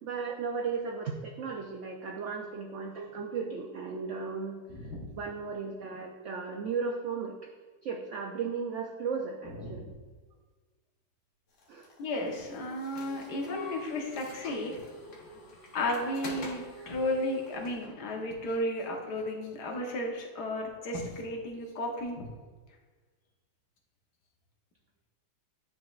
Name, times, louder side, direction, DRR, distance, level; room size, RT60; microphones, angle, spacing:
voice 1, 0.0-4.6 5.1-7.4 7.8-9.8 11.7-11.9 16.8-16.9, right 5 dB, 80° right, 1 dB, 0.6 m, -35 dB
voice 2, 4.7-5.1 9.6-9.9 12.0-14.8 15.7-22.3, left 1 dB, 70° left, 1 dB, 1.5 m, -34 dB
sound 1, 11.6-18.0, left 1 dB, 50° left, 1.2 m, -46 dB
9.9 x 4.0 x 2.4 m, 1.4 s
omnidirectional pair, 1.9 m